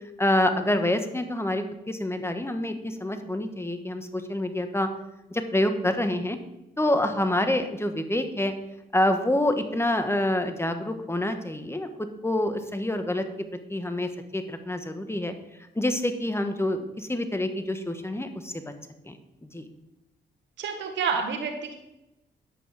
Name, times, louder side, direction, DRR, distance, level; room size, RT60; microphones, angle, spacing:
voice 1, 0.2-4.9 5.3-6.4 6.8-8.5 8.9-11.9 12.2-13.2 13.7-15.3 15.7-18.6 19.0-19.1 19.5-19.6, left 1 dB, 15° left, 8 dB, 1.4 m, -27 dB
voice 2, 20.6-21.8, right 6 dB, 85° right, 5 dB, 1.7 m, -29 dB
10.0 x 8.1 x 5.0 m, 0.90 s
cardioid pair, 60°, 18 cm